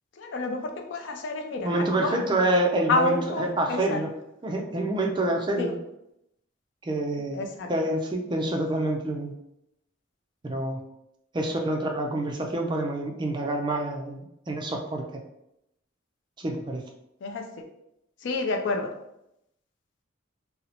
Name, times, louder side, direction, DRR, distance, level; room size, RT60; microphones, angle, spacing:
voice 1, 0.2-1.7 2.0-2.2 2.9-4.0 5.6-5.7 7.3-7.7 17.2-17.6 18.2-18.9, left 2 dB, 60° left, 4 dB, 0.4 m, -28 dB
voice 2, 1.6-4.1 4.4-5.7 6.8-7.4 7.7-9.3 10.4-10.8 11.3-15.0 16.4-16.8, right 1 dB, 25° right, 2 dB, 0.4 m, -27 dB
2.8 x 2.0 x 3.8 m, 0.82 s
head